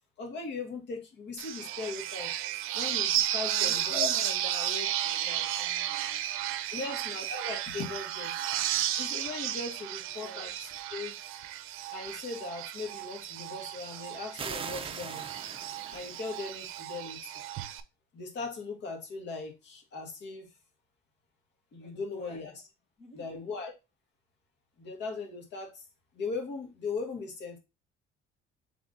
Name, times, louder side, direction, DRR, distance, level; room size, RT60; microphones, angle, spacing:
voice 1, 0.2-2.3 2.7-4.1 6.7-8.3 9.0-11.1 11.9-15.3 15.9-17.3 18.1-20.5 21.7-22.5 23.1-23.7 24.8-25.8 26.1-27.6, left 4 dB, 55° left, 3 dB, 1.4 m, -38 dB
sound 1, 1.4-17.8, right 12 dB, 80° right, 0.5 m, -33 dB
voice 2, 3.5-6.2 6.8-7.1 8.4-8.5 10.0-10.4 21.8-22.6 23.0-23.4, left 2 dB, 35° left, -1 dB, 1.6 m, -46 dB
sound 2, 14.4-16.9, right 6 dB, 25° right, 0.5 m, -41 dB
3.9 x 3.5 x 3.7 m, 0.25 s
cardioid pair, 135°, 21 cm